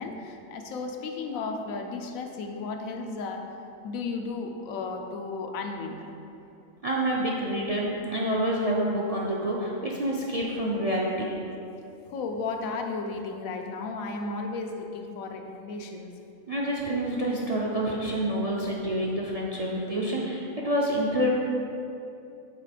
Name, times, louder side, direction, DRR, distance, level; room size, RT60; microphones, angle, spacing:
voice 1, 0.0-3.4 3.8-6.1 12.1-16.1, left 3 dB, 90° left, 4 dB, 1.1 m, -34 dB
voice 2, 6.8-11.4 16.5-21.3, right 1 dB, 50° right, -3 dB, 0.4 m, -28 dB
6.6 x 4.1 x 5.0 m, 2.7 s
omnidirectional pair, 1.4 m